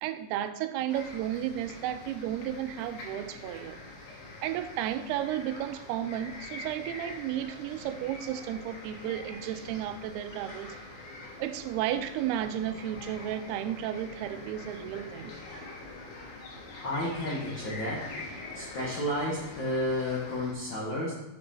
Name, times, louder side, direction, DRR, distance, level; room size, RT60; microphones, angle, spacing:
voice 1, 0.0-3.8 4.4-10.8 11.4-15.3, right 11 dB, 90° right, 10 dB, 2.6 m, -33 dB
sound 1, 0.9-20.5, left 2 dB, 60° left, 2.4 m, -44 dB
voice 2, 16.8-18.0 18.5-21.1, left 1 dB, 90° left, -5 dB, 1.0 m, -31 dB
7.0 x 6.0 x 4.1 m, 1.0 s
omnidirectional pair, 4.5 m